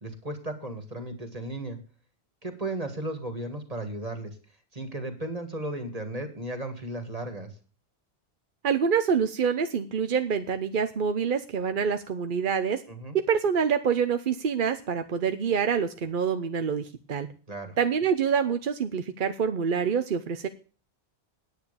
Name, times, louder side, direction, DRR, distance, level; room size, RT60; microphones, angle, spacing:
voice 1, 0.0-1.8 2.4-4.3 4.7-7.5 12.9-13.2 17.5-17.8, right 1 dB, 35° right, 6 dB, 2.3 m, -35 dB
voice 2, 8.6-12.8 13.1-17.3 17.8-20.5, right 6 dB, 55° right, 9 dB, 0.9 m, -26 dB
9.5 x 9.4 x 6.8 m, 0.38 s
omnidirectional pair, 1.1 m